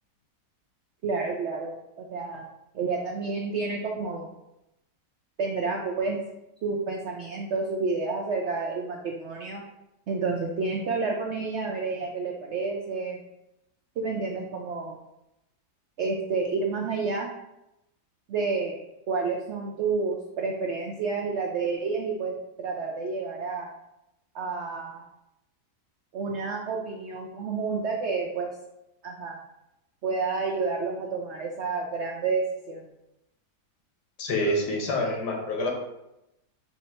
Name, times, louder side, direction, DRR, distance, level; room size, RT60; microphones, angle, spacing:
voice 1, 1.0-2.4 2.7-4.3 5.4-6.2 6.6-9.6 10.1-13.2 14.0-15.0 16.0-17.3 18.3-18.8 19.1-23.7 24.3-25.0 26.1-28.5 29.0-29.4 30.0-32.8, right 4 dB, 85° right, 0 dB, 0.6 m, -30 dB
voice 2, 34.2-35.7, left 1 dB, 80° left, 0 dB, 1.5 m, -27 dB
3.6 x 2.9 x 4.2 m, 0.89 s
omnidirectional pair, 1.8 m